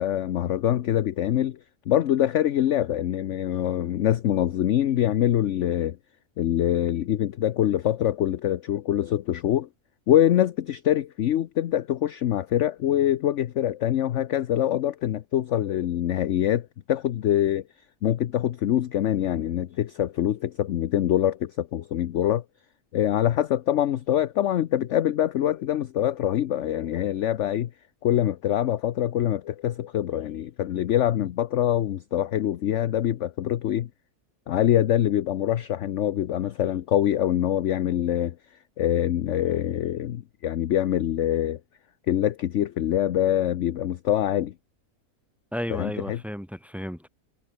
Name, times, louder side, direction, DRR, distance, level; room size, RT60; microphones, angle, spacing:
voice 1, 0.0-1.6 1.9-6.0 6.4-9.7 10.1-17.6 18.0-22.4 22.9-27.7 28.0-33.9 34.5-38.3 38.8-41.6 42.1-44.5 45.7-46.2, left 11 dB, 60° left, 0.9 m, -24 dB
voice 2, 45.5-47.1, equal, ahead, 2.6 m, -33 dB
omnidirectional pair, 1.6 m